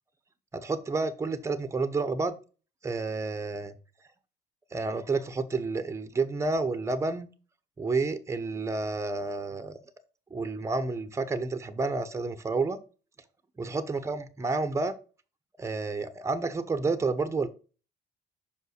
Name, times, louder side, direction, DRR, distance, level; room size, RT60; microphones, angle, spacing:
voice 1, 0.5-2.4 2.8-3.7 4.7-7.3 7.8-9.8 10.3-12.8 13.6-14.9 15.6-17.5, right 3 dB, 15° right, 0.9 m, -30 dB
5.4 x 5.3 x 6.5 m
cardioid pair, 110°, 17 cm